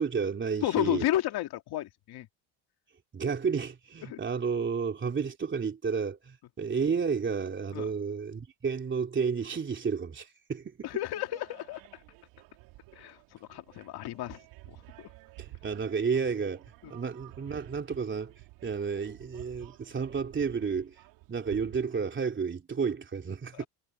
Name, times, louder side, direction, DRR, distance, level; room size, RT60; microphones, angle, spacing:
voice 1, 0.0-1.0 3.1-10.9 15.4-18.3 18.6-20.9 21.3-23.7, right 5 dB, 25° right, 3.3 m, -31 dB
voice 2, 0.6-2.3 4.1-4.2 7.7-7.9 10.8-11.8 13.0-13.2 13.5-14.4 14.7-15.1 23.6-23.7, left 13 dB, 60° left, 2.3 m, -32 dB
sound 1, 11.1-22.1, right 20 dB, 85° right, 3.7 m, -52 dB
cardioid pair, 125°, 43 cm